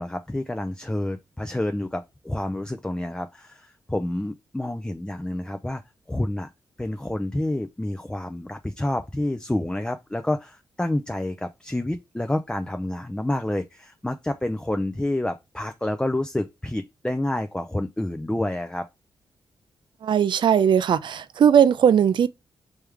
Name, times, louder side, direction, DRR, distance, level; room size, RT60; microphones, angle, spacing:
voice 1, 0.0-5.8 6.1-6.5 6.8-18.9, left 1 dB, 10° left, 0.4 m, -28 dB
voice 2, 20.0-22.3, right 8 dB, 60° right, 0.4 m, -18 dB
3.3 x 3.2 x 3.4 m
supercardioid pair, 50°, 9 cm